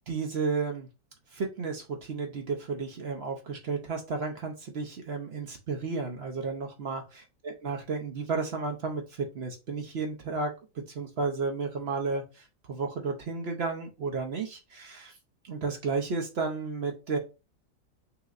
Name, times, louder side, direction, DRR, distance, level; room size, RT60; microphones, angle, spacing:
voice 1, 0.1-0.9 1.3-7.0 7.4-15.2 15.4-17.2, right 4 dB, 60° right, 3 dB, 0.7 m, -33 dB
5.8 x 3.0 x 2.5 m, 0.29 s
omnidirectional pair, 1.9 m